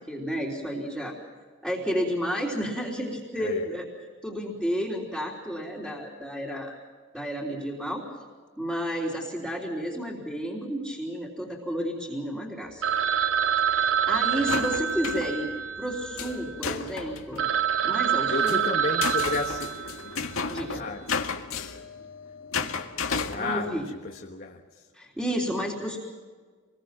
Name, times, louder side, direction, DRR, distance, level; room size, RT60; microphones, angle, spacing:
voice 1, 0.1-1.2 1.6-3.9 4.2-6.8 7.1-8.0 8.6-12.8 13.7-17.5 17.8-18.6 20.5-20.8 22.6-22.7 23.4-23.8 24.9-26.0, equal, 5° right, -4 dB, 3.5 m, -31 dB
Telephone, 12.8-16.6 17.1-17.2 17.4-20.3, right 8 dB, 60° right, 0.7 m, -26 dB
sound 1, 14.4-15.4 16.2-17.5 18.2-23.4, left 5 dB, 80° left, 1.8 m, -33 dB
voice 2, 18.3-20.1 20.7-21.1 23.1-24.8, left 3 dB, 45° left, 1 dB, 1.5 m, -33 dB
27.5 x 22.0 x 6.0 m, 1.5 s
head